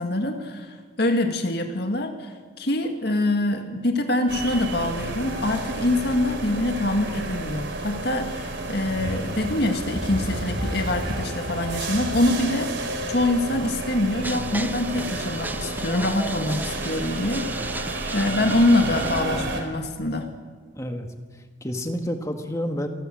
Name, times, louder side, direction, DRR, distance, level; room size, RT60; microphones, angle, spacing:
voice 1, 0.0-17.7 18.1-20.3, left 1 dB, 55° left, 4 dB, 2.1 m, -25 dB
sound 1, 4.3-19.6, right 2 dB, 65° right, 3.6 m, -31 dB
Fire, 8.8-13.3, equal, 25° right, 2.8 m, -34 dB
sound 2, 14.2-19.2, right 2 dB, 10° right, 0.7 m, -35 dB
voice 2, 20.7-21.1 21.3-22.9, equal, 15° left, 5 dB, 1.8 m, -29 dB
28.0 x 19.0 x 7.8 m, 1.5 s
head